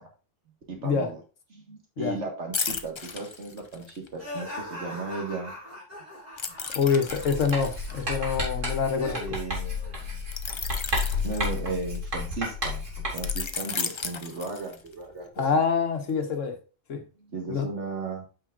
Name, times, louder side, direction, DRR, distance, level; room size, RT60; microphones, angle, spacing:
voice 1, 0.7-1.2 1.5-5.5 6.6-6.7 9.1-10.2 10.9-15.4 17.2-18.3, right 3 dB, 65° right, 1.9 m, -36 dB
sound 1, 2.5-4.1 6.4-9.1 10.3-12.2 13.2-15.0 15.4-15.6, left 5 dB, 35° left, 0.5 m, -35 dB
sound 2, 4.2-9.4 9.8-10.0, left 1 dB, 35° right, 4.5 m, -41 dB
voice 2, 6.7-9.4 15.4-16.6 16.9-17.0 17.5-17.7, left 5 dB, 85° left, 1.6 m, -26 dB
Writing, 7.1-13.5, left 2 dB, 90° right, 3.2 m, -31 dB
8.8 x 5.6 x 2.5 m
omnidirectional pair, 1.3 m